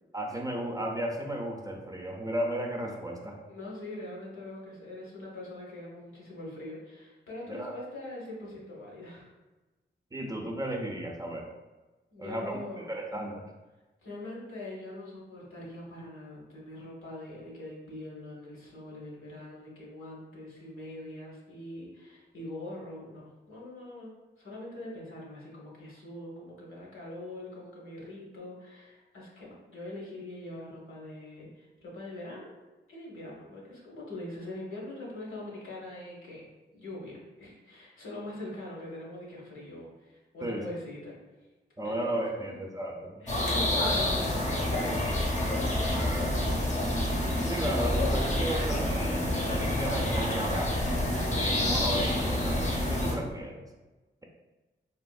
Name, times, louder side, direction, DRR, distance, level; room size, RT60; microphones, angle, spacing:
voice 1, 0.1-3.4 7.5-7.8 10.1-11.5 12.2-13.5 40.4-40.7 41.8-43.2 47.5-50.9 51.3-53.7, right 1 dB, 15° right, 1 dB, 0.5 m, -34 dB
voice 2, 3.5-9.3 12.1-12.9 14.0-24.1 24.4-32.5 32.9-36.5 36.7-41.2 41.8-42.6 43.2-46.8, left 1 dB, 85° left, -4 dB, 1.0 m, -43 dB
sound 1, 43.3-53.2, left 1 dB, 35° left, 0.8 m, -28 dB
3.4 x 2.4 x 2.3 m, 1.2 s
cardioid pair, 55°, 21 cm